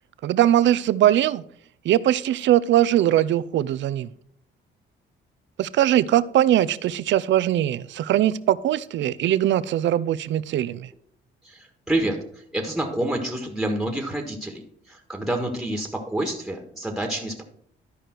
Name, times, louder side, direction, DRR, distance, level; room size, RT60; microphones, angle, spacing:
voice 1, 0.2-1.4 1.8-4.1 5.6-10.9, right 12 dB, 70° right, 16 dB, 0.5 m, -21 dB
voice 2, 11.4-17.4, right 1 dB, ahead, 3 dB, 1.6 m, -28 dB
12.0 x 5.0 x 4.5 m, 0.64 s
cardioid pair, 90°, 20 cm